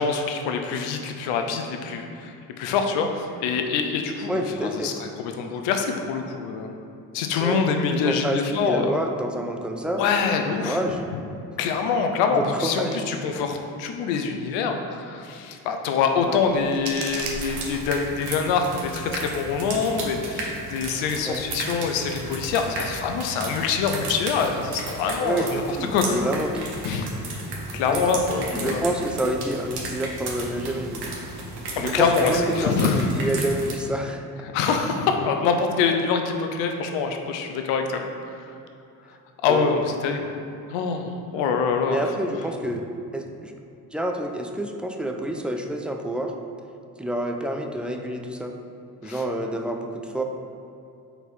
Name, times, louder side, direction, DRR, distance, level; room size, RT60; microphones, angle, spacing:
voice 1, 0.0-4.3 4.6-6.7 7.1-8.9 10.0-10.8 11.1-11.2 11.6-25.6 25.9-26.2 26.8-27.1 27.7-28.8 31.8-33.1 34.5-38.3 39.4-40.3 40.7-42.0 49.0-49.2, left 5 dB, 70° left, 4 dB, 0.8 m, -25 dB
voice 2, 4.3-4.9 7.4-7.6 7.9-10.0 10.5-11.0 12.3-13.0 16.3-16.5 21.2-21.4 25.2-26.7 27.5-27.6 27.9-28.1 28.5-31.0 31.8-34.2 39.5-39.7 41.9-42.9 43.1-43.5 43.9-46.3 47.0-48.6 49.0-50.2, right 1 dB, ahead, 3 dB, 0.5 m, -28 dB
sound 1, 16.2-18.2, right 3 dB, 75° right, 1.0 m, -36 dB
sound 2, 17.4-33.7, right 2 dB, 55° right, 1.3 m, -34 dB
4.5 x 4.1 x 5.4 m, 2.6 s
hypercardioid pair, 55°, 46 cm